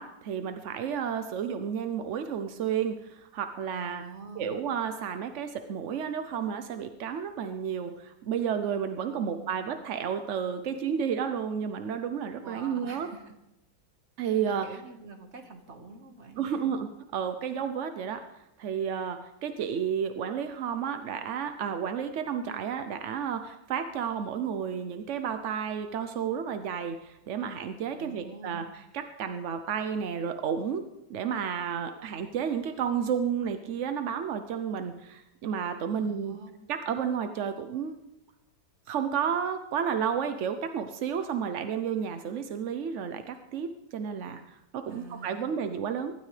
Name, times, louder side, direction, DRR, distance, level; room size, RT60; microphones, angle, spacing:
voice 1, 0.0-4.0 4.4-13.1 14.2-14.7 16.4-30.8 31.1-36.4 36.7-37.9 38.9-46.1, right 7 dB, 60° right, 8 dB, 0.8 m, -32 dB
voice 2, 3.7-4.6 9.1-9.7 12.4-13.3 14.4-16.7 27.9-28.7 35.9-36.5 44.9-45.6, right 3 dB, 40° right, 4 dB, 1.7 m, -46 dB
24.5 x 12.5 x 3.3 m, 0.89 s
omnidirectional pair, 1.9 m